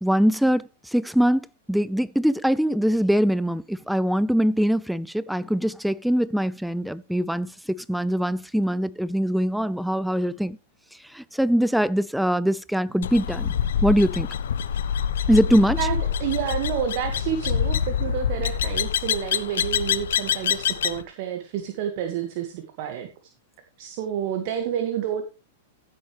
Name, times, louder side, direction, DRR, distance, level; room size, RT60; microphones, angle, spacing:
voice 1, 0.0-10.6 11.0-13.5 13.8-14.3 15.3-15.8, equal, ahead, 0.5 m, -22 dB
sound 1, 13.0-21.0, left 8 dB, 70° left, 0.9 m, -26 dB
voice 2, 15.8-23.1 23.8-25.2, right 9 dB, 50° right, 1.9 m, -29 dB
15.0 x 8.0 x 3.3 m
hypercardioid pair, 105°, 0 cm